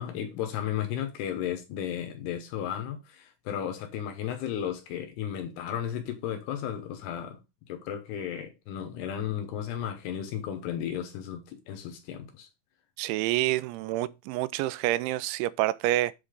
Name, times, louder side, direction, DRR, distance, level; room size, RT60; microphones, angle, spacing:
voice 1, 0.0-7.4 7.7-12.5, left 9 dB, 70° left, 2.8 m, -34 dB
voice 2, 13.0-16.1, right 16 dB, 90° right, 3.0 m, -28 dB
8.1 x 4.2 x 5.0 m
omnidirectional pair, 5.3 m